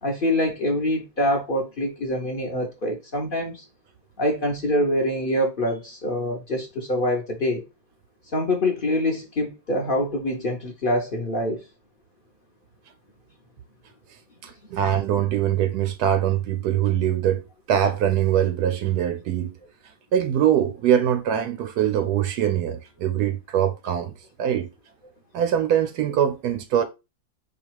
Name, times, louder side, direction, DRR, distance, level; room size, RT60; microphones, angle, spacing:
voice 1, 0.0-3.6 4.2-7.6 8.3-11.6, left 1 dB, 50° left, 0.6 m, -25 dB
voice 2, 14.4-17.4 17.7-19.6 20.1-24.1 24.4-24.7 25.3-26.8, right 10 dB, 75° right, 0.9 m, -23 dB
4.8 x 2.4 x 4.5 m
omnidirectional pair, 2.1 m